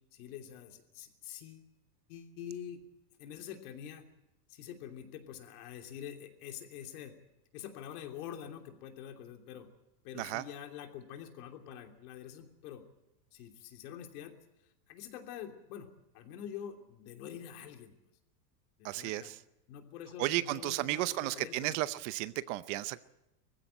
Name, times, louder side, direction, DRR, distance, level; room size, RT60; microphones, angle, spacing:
voice 1, 0.1-1.7 2.1-2.8 3.2-4.1 4.5-7.1 7.5-9.7 10.0-12.8 13.3-14.3 14.9-17.9 18.8-19.3 19.7-21.8, left 9 dB, 60° left, 4 dB, 3.1 m, -46 dB
voice 2, 18.8-19.4 20.2-23.0, right 17 dB, 45° right, 15 dB, 0.8 m, -34 dB
20.0 x 15.5 x 8.9 m, 0.92 s
supercardioid pair, 145°, 50 cm